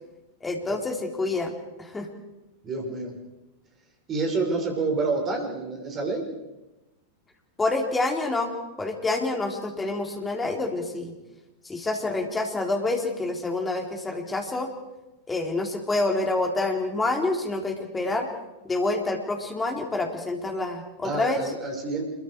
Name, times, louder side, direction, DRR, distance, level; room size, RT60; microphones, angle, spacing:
voice 1, 0.4-2.1 7.6-11.1 11.6-14.7 15.3-18.3 18.6-21.4, left 2 dB, 10° left, 2 dB, 3.8 m, -27 dB
voice 2, 2.6-3.2 4.1-6.3 21.0-22.1, right 3 dB, 25° right, 2 dB, 6.0 m, -28 dB
27.0 x 23.0 x 4.8 m, 1.0 s
figure-of-eight pair, 90°, 0 cm